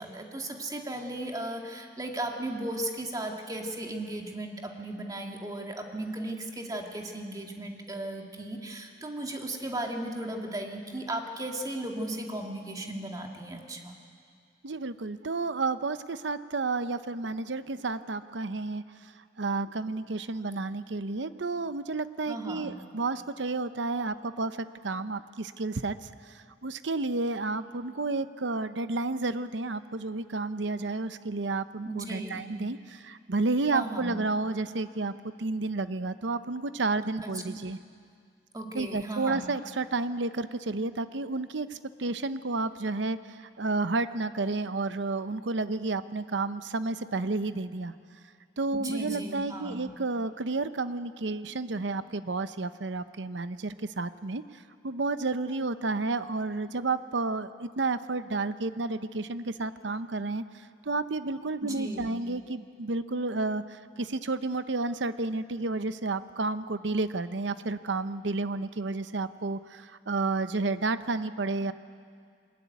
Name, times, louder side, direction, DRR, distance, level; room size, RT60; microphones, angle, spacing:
voice 1, 0.0-14.0 22.3-22.8 31.8-32.5 33.7-34.2 37.2-37.3 38.5-39.5 48.7-49.9 61.6-62.1, right 1 dB, 20° right, 2 dB, 2.1 m, -36 dB
voice 2, 14.6-19.1 19.4-24.6 24.8-37.8 38.7-47.9 48.6-60.4 60.8-71.7, right 3 dB, 80° right, 12 dB, 0.8 m, -31 dB
22.5 x 20.0 x 9.5 m, 2.2 s
head